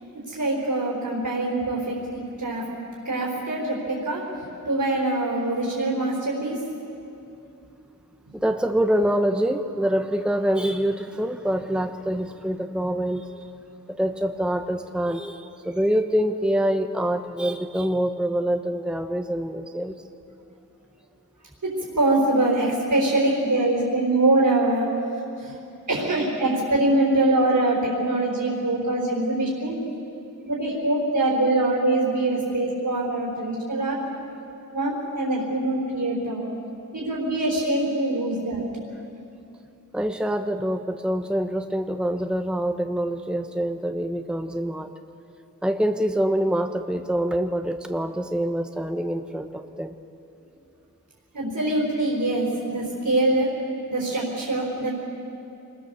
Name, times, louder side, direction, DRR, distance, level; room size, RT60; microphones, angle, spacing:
voice 1, 0.3-2.6 3.0-4.2 4.6-6.6 21.6-24.9 25.4-25.6 25.9-29.8 30.5-34.0 34.7-36.4 36.9-38.8 51.3-53.5 53.9-54.9, right 2 dB, 65° right, -4 dB, 4.7 m, -23 dB
voice 2, 8.3-13.5 13.9-20.0 39.9-44.9 45.6-49.9, right 1 dB, 5° right, 6 dB, 1.0 m, -25 dB
25.5 x 20.5 x 7.0 m, 2.7 s
wide cardioid pair, 60°, 34 cm